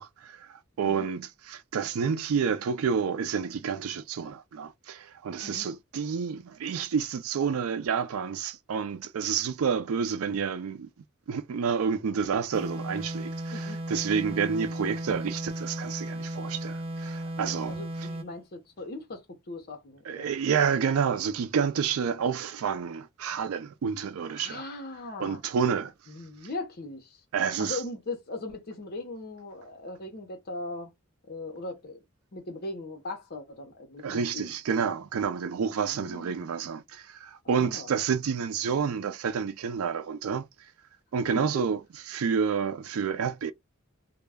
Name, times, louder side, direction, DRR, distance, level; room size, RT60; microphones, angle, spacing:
voice 1, 0.0-10.9 11.3-18.1 20.1-24.6 25.2-25.9 27.3-27.8 34.0-40.5 41.1-41.8 42.1-43.5, right 6 dB, 90° right, 0.4 m, -29 dB
sound 1, 12.5-18.4, right 1 dB, 30° right, 0.5 m, -35 dB
voice 2, 13.5-13.8 14.1-14.4 17.7-20.3 24.3-25.4 26.1-27.2 27.6-30.9 31.3-32.0 32.3-34.9 35.8-36.5 37.4-37.9 41.3-41.6, left 2 dB, 50° left, 0.7 m, -39 dB
2.2 x 2.1 x 3.3 m
head